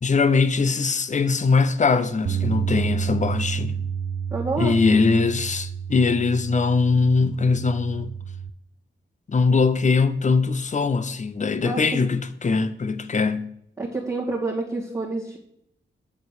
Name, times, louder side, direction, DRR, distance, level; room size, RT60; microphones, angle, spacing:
voice 1, 0.0-3.8 4.6-8.1 9.3-13.5, left 4 dB, 35° left, 0.6 m, -21 dB
Bass guitar, 2.3-8.5, right 7 dB, 50° right, 0.5 m, -30 dB
voice 2, 4.3-4.8 11.6-12.0 13.8-15.4, right 3 dB, 15° right, 2.1 m, -28 dB
8.4 x 4.3 x 6.4 m
cardioid pair, 60°, 21 cm